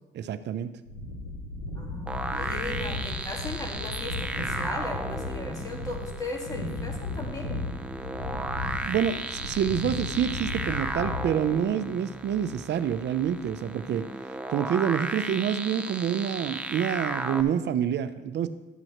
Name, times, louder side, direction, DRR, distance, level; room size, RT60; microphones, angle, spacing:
voice 1, 0.1-0.7 8.0-8.1 8.8-14.1 14.5-18.5, right 9 dB, 60° right, 12 dB, 0.6 m, -27 dB
sound 1, 0.9-12.0, left 2 dB, 90° left, 2.0 m, -35 dB
voice 2, 1.8-7.6, left 2 dB, 15° left, 1 dB, 1.9 m, -37 dB
sound 2, 2.1-17.4, right 1 dB, 5° right, 0.6 m, -35 dB
12.0 x 7.8 x 3.0 m, 1.2 s
cardioid pair, 90°, 20 cm